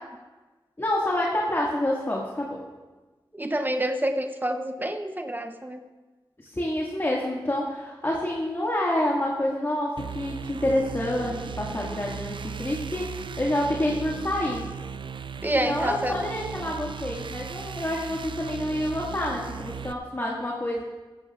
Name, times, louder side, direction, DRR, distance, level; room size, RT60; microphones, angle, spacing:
voice 1, 0.8-2.6 6.4-14.7 15.6-20.8, left 1 dB, 30° left, -3 dB, 2.0 m, -28 dB
voice 2, 3.4-5.8 15.4-16.2, right 1 dB, 20° right, 7 dB, 0.8 m, -27 dB
sound 1, 10.0-19.9, right 6 dB, 70° right, 0.4 m, -37 dB
15.5 x 14.5 x 2.5 m, 1.3 s
cardioid pair, 60°, 9 cm